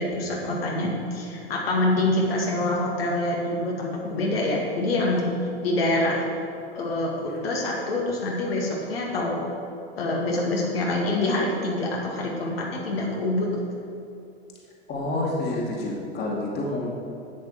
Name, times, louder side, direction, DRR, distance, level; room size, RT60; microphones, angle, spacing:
voice 1, 0.0-6.3 6.7-9.4 10.0-13.5, left 1 dB, 65° left, -2 dB, 2.3 m, -26 dB
voice 2, 14.9-16.9, left 2 dB, 30° left, -2 dB, 2.5 m, -28 dB
12.5 x 8.7 x 5.0 m, 2.7 s
figure-of-eight pair, 95°, 32 cm